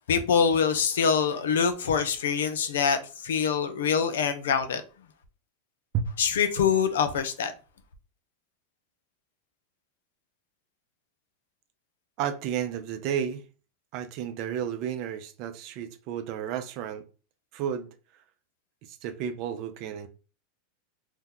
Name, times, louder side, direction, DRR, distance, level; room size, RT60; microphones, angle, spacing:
voice 1, 0.1-4.8 6.2-7.5, left 6 dB, 85° left, 0.5 m, -25 dB
voice 2, 12.2-13.4 13.9-17.0 17.5-17.9 18.8-20.1, right 9 dB, 55° right, 0.5 m, -32 dB
2.8 x 2.2 x 3.6 m
hypercardioid pair, 115°, 0 cm